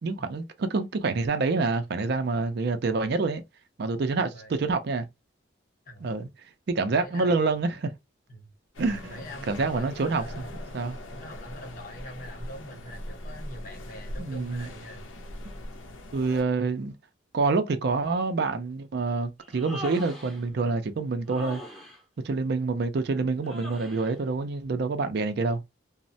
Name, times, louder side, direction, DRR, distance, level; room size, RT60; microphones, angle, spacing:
voice 1, 0.0-3.4 3.8-5.1 6.0-6.3 6.7-7.9 8.8-10.4 10.7-11.0 14.2-14.7 16.1-16.9 17.3-21.6 22.2-25.6, right 3 dB, 55° right, 0.4 m, -27 dB
voice 2, 5.9-6.2 6.9-7.4 8.3-8.5 9.1-15.1, equal, 45° left, 0.8 m, -44 dB
sound 1, 8.7-16.4, left 1 dB, 90° left, 0.6 m, -41 dB
Human voice, 19.4-20.4 21.3-22.0 23.4-24.1, left 1 dB, ahead, 0.6 m, -40 dB
3.0 x 2.0 x 2.6 m
head